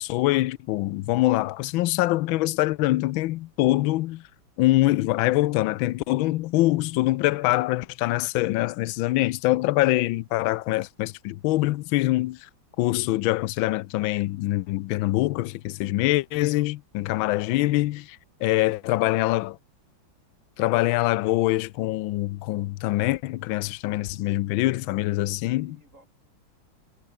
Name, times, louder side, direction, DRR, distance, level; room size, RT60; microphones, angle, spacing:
voice 1, 0.0-4.2 4.6-12.5 12.8-19.6 20.6-25.8, left 17 dB, 75° left, 1.4 m, -24 dB
voice 2, 18.4-19.5 24.6-26.1, right 2 dB, 35° right, 7.7 m, -59 dB
omnidirectional pair, 2.2 m